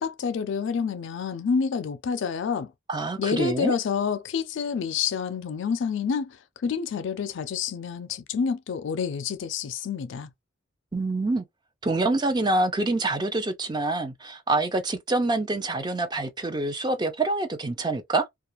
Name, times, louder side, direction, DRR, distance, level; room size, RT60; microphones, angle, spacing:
voice 1, 0.0-2.7 3.2-6.4 6.6-10.3, left 6 dB, 65° left, 0.4 m, -28 dB
voice 2, 2.9-3.8 10.9-11.4 11.8-18.2, right 2 dB, 20° right, 0.4 m, -26 dB
2.4 x 2.3 x 2.9 m
head